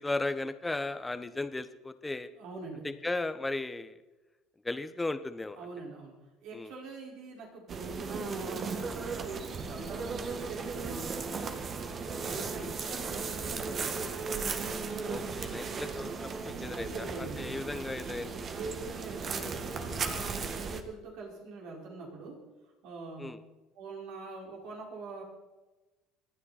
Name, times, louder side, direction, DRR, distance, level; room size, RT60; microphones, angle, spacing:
voice 1, 0.0-2.3 2.8-4.0 4.6-5.6 6.5-6.7 15.1-18.4 23.2-23.4, left 2 dB, 15° left, 11 dB, 1.2 m, -36 dB
voice 2, 2.3-2.8 5.6-6.1 6.4-11.4 12.2-14.2 16.5-17.5 18.5-22.4 22.8-23.3 23.7-25.2, right 3 dB, 70° right, -2 dB, 5.1 m, -44 dB
sound 1, 7.7-20.8, right 4 dB, 40° right, 1.7 m, -36 dB
26.0 x 9.9 x 4.3 m, 1.1 s
supercardioid pair, 85°, 0 cm